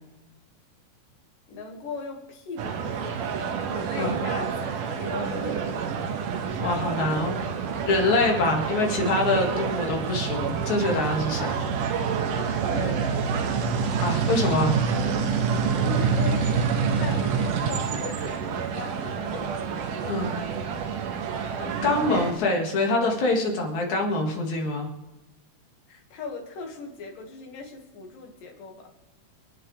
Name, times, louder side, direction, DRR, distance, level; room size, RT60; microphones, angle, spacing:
voice 1, 1.5-4.7 4.9-5.9 12.7-13.4 15.7-19.6 21.6-21.8 25.9-28.9, left 3 dB, 90° left, 2 dB, 3.7 m, -38 dB
sound 1, 2.6-22.3, right 6 dB, 80° right, 2.7 m, -27 dB
voice 2, 6.6-7.4 7.9-11.6 14.0-14.7 20.1-20.3 21.8-24.9, left 2 dB, 65° left, 1 dB, 3.4 m, -25 dB
28.0 x 9.4 x 3.4 m, 0.99 s
omnidirectional pair, 3.8 m